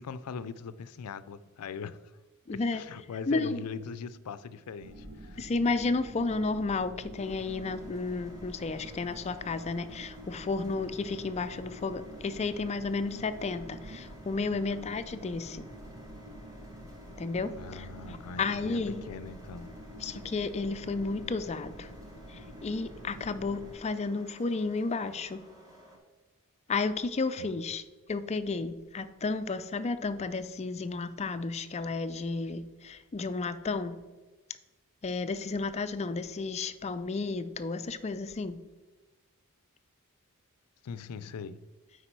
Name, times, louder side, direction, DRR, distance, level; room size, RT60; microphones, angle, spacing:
voice 1, 0.0-2.2 2.5-5.4 14.5-14.8 17.5-18.8 19.1-19.8 27.4-27.7 40.8-41.7, left 5 dB, 90° left, 0.4 m, -41 dB
voice 2, 2.5-2.8 3.3-3.6 5.4-15.7 17.2-19.0 20.0-21.9 22.3-25.4 26.7-27.8 28.1-34.0 35.0-38.6, left 3 dB, 30° left, 0.4 m, -32 dB
sound 1, 4.8-23.7, equal, 75° right, 1.5 m, -47 dB
sound 2, 7.2-26.0, equal, 15° right, 1.4 m, -54 dB
8.4 x 4.8 x 4.6 m
head